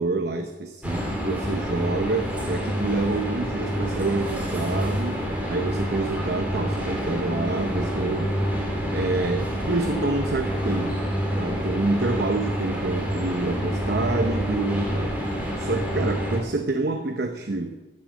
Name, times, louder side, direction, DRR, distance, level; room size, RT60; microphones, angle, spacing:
voice 1, 0.0-8.3 8.9-11.0 11.4-17.7, right 2 dB, 55° right, 6 dB, 0.8 m, -27 dB
sound 1, 0.8-16.4, equal, 10° right, 2.4 m, -27 dB
12.0 x 7.4 x 8.6 m, 1.2 s
head